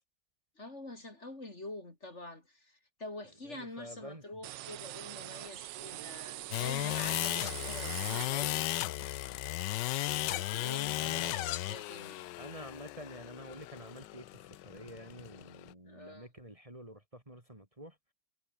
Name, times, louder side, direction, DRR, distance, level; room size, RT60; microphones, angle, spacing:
voice 1, 0.6-8.7 10.2-12.3 15.9-16.3, left 2 dB, 40° left, 4.1 m, -46 dB
voice 2, 3.4-4.4 11.0-11.4 12.4-18.0, right 1 dB, 20° right, 3.6 m, -49 dB
sound 1, 4.4-8.8, right 16 dB, 85° right, 1.3 m, -43 dB
sound 2, 6.5-15.7, left 16 dB, 80° left, 1.3 m, -35 dB
omnidirectional pair, 1.9 m